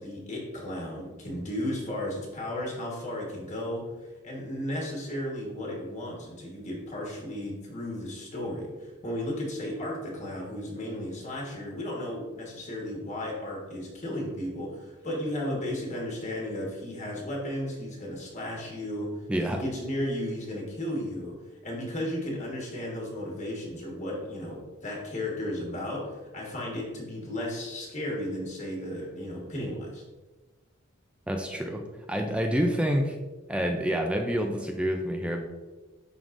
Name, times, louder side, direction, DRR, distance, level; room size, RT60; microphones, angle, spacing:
voice 1, 0.0-30.0, left 1 dB, 35° left, -2 dB, 1.3 m, -34 dB
voice 2, 19.3-19.6 31.3-31.8 32.1-33.2 33.5-35.4, equal, 5° right, 3 dB, 0.4 m, -27 dB
11.0 x 3.7 x 2.5 m, 1.2 s
head